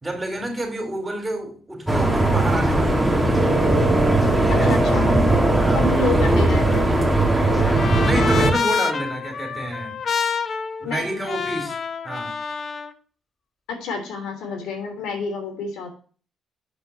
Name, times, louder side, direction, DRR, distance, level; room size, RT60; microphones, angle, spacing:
voice 1, 0.0-3.0 4.4-4.7 5.5-5.9 6.1-6.5 8.0-10.0 10.8-11.8 12.0-12.3, right 1 dB, 20° right, 3 dB, 3.9 m, -28 dB
sound 1, 1.9-8.5, right 2 dB, 5° right, 2.6 m, -18 dB
voice 2, 4.5-5.1 5.7-7.1 10.8-11.2 13.7-15.9, left 3 dB, 85° left, 4 dB, 3.2 m, -29 dB
Trumpet, 6.6-12.9, left 6 dB, 50° left, 0.8 m, -28 dB
8.8 x 5.1 x 7.2 m, 0.42 s
cardioid pair, 90°, 0 cm